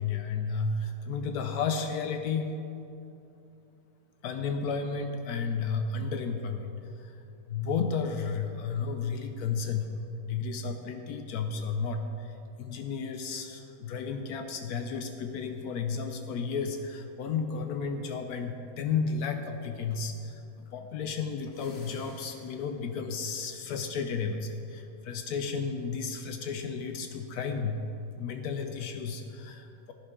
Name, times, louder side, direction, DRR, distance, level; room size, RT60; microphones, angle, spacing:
voice 1, 0.0-2.5 4.2-7.1 7.5-9.9 10.2-12.3 12.6-27.8 28.2-29.9, left 5 dB, 80° left, 6 dB, 1.2 m, -33 dB
sound 1, 21.4-23.1, left 3 dB, 50° left, 1.0 m, -51 dB
16.0 x 10.5 x 3.7 m, 2.8 s
omnidirectional pair, 1.6 m